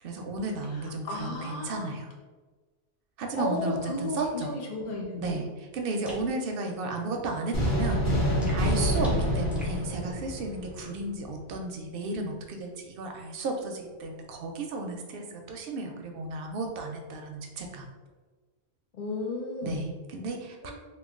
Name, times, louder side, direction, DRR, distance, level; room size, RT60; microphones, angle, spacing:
voice 1, 0.0-2.1 3.2-4.5 5.2-5.5 5.7-17.8 19.6-20.7, right 2 dB, 65° right, 3 dB, 0.7 m, -34 dB
voice 2, 0.7-1.9 3.4-5.4 18.9-19.9 20.6-20.7, left 2 dB, 50° left, 0 dB, 0.7 m, -34 dB
sound 1, 6.0-6.3 8.4-9.8, equal, ahead, 0.5 m, -47 dB
sound 2, 7.5-11.0, equal, 80° left, 1.3 m, -27 dB
3.0 x 2.3 x 3.6 m, 1.3 s
omnidirectional pair, 1.1 m